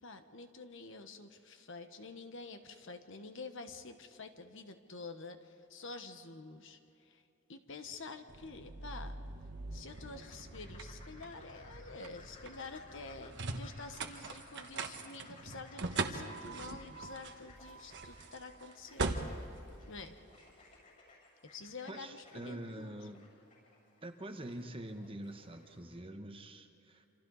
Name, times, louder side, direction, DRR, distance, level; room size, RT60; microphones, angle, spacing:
voice 1, 0.0-7.2 7.5-9.2 9.7-19.1 19.9-20.1 21.4-23.0, left 3 dB, 60° left, 7 dB, 1.2 m, -48 dB
sound 1, 8.3-20.6, right 3 dB, 55° right, 1.3 m, -42 dB
sound 2, 9.9-26.0, left 3 dB, 35° left, 7.6 m, -60 dB
voice 2, 21.9-23.2 24.0-27.1, right 1 dB, 25° right, 6 dB, 1.2 m, -45 dB
27.5 x 26.5 x 4.1 m, 2.7 s
head